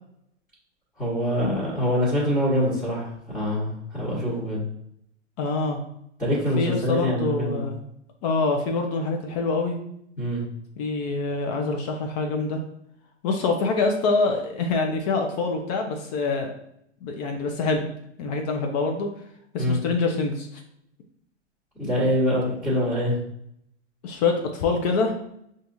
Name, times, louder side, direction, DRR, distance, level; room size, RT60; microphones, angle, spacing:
voice 1, 1.0-4.6 6.2-7.6 10.2-10.4 19.6-19.8 21.8-23.2, equal, 5° left, -11 dB, 1.3 m, -24 dB
voice 2, 5.4-5.8 6.6-7.8 8.2-9.8 10.8-12.6 13.2-16.5 17.0-17.9 18.2-19.1 19.5-20.6 24.0-25.1, left 3 dB, 35° left, 3 dB, 0.5 m, -25 dB
5.4 x 2.5 x 2.6 m, 0.73 s
hypercardioid pair, 110°, 36 cm